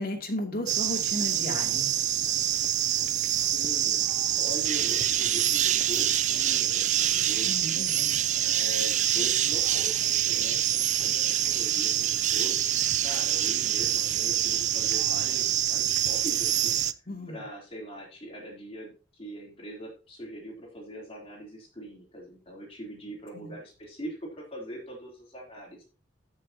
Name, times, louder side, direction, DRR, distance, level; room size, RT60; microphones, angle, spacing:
voice 1, 0.0-1.9 7.4-8.2 17.1-17.4 23.3-23.5, left 1 dB, 55° left, 1 dB, 2.8 m, -34 dB
sound 1, 0.7-16.9, right 11 dB, 40° right, 0.4 m, -26 dB
voice 2, 3.5-4.1 4.3-7.5 8.3-16.8 17.3-25.8, equal, 35° left, -2 dB, 3.3 m, -42 dB
15.0 x 6.4 x 2.9 m, 0.34 s
head